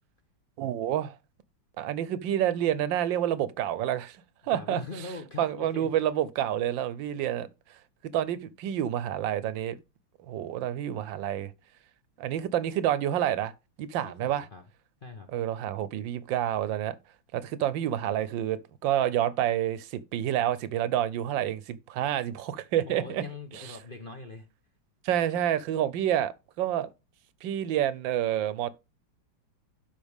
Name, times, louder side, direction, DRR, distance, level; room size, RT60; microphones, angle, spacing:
voice 1, 0.6-1.2 1.8-4.2 4.5-4.8 5.4-7.5 8.1-9.8 10.3-11.5 12.2-13.5 13.8-14.5 15.3-17.0 17.3-23.2 25.0-26.9 27.4-28.7, right 11 dB, 75° right, 1.4 m, -28 dB
voice 2, 4.4-5.9 14.0-14.6 15.0-15.3 22.9-24.5, left 3 dB, 40° left, 0.8 m, -42 dB
12.0 x 5.3 x 3.5 m
omnidirectional pair, 2.1 m